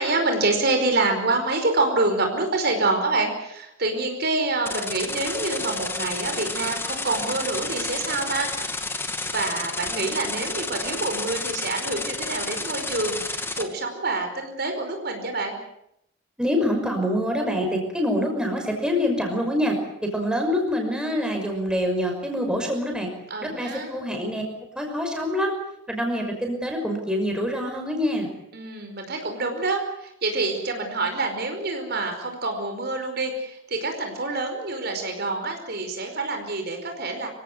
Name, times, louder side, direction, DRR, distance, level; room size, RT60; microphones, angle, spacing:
voice 1, 0.0-8.5 8.8-9.0 9.3-15.6 23.3-23.9 28.5-37.3, right 2 dB, 55° right, 5 dB, 5.0 m, -27 dB
sound 1, 4.6-13.6, left 3 dB, 10° left, 2.3 m, -31 dB
voice 2, 16.4-19.8 20.0-23.1 23.4-24.4 24.8-25.5 25.9-28.3, equal, 5° right, 2 dB, 5.8 m, -25 dB
26.5 x 17.0 x 9.5 m, 0.79 s
head